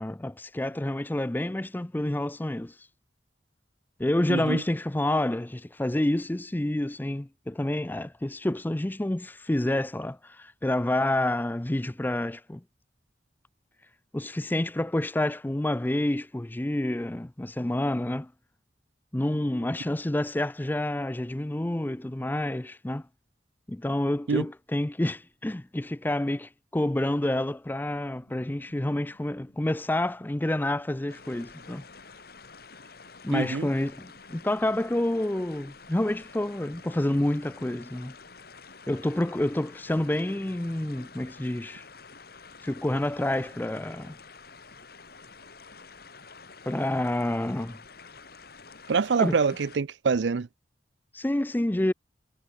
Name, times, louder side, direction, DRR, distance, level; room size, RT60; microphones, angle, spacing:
voice 1, 0.0-2.7 4.0-12.6 14.1-18.3 19.1-23.0 23.7-31.8 33.2-38.1 38.9-41.9 42.6-44.2 46.6-47.8 49.2-49.4 51.1-51.9, left 1 dB, 10° left, 0.4 m, -28 dB
voice 2, 4.3-4.6 24.3-24.4 33.3-33.7 48.9-50.5, right 5 dB, 75° right, 0.5 m, -25 dB
sound 1, 27.8-41.5, equal, 75° left, 7.9 m, -62 dB
sound 2, 31.1-49.8, left 4 dB, 60° left, 4.2 m, -49 dB
head